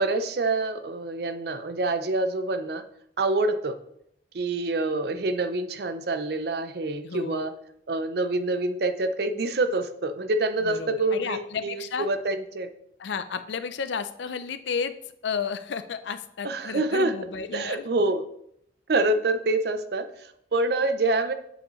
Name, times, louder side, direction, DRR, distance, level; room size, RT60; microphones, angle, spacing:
voice 1, 0.0-2.8 3.2-3.8 4.3-7.5 7.9-12.7 16.4-17.1 17.5-18.2 18.9-21.3, right 2 dB, 55° right, 9 dB, 0.5 m, -26 dB
voice 2, 7.0-7.5 10.6-12.1 13.0-14.9 15.2-17.9, left 6 dB, 70° left, 11 dB, 0.5 m, -32 dB
7.5 x 5.2 x 3.1 m, 0.73 s
head